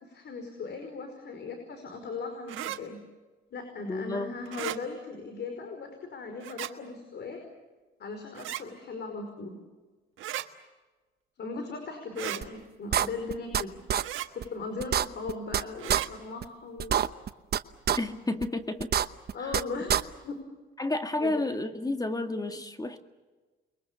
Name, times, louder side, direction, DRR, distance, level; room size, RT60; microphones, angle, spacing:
voice 1, 0.0-3.0 3.5-7.4 8.0-9.6 11.4-13.8 14.3-17.0 19.3-19.9 20.2-20.4 21.2-21.4, left 4 dB, 60° left, 5 dB, 5.1 m, -38 dB
sound 1, 2.5-2.8 4.5-4.8 6.4-6.7 8.4-8.6 10.2-10.5 12.2-12.4 14.0-14.3 15.8-16.1, right 13 dB, 80° right, 1.5 m, -35 dB
voice 2, 3.9-4.3 18.0-19.1 20.8-23.0, left 2 dB, 20° left, 7 dB, 1.9 m, -31 dB
sound 2, 12.4-12.5 12.9-13.6 13.9-14.0 14.4-14.5 14.8-15.6 15.9-16.0 16.4-16.5 16.8-17.6 17.9-18.0 18.4-18.5 18.8-19.6 19.9-20.0, right 9 dB, 55° right, 0.9 m, -25 dB
29.5 x 23.0 x 6.9 m, 1.3 s
cardioid pair, 90°, 20 cm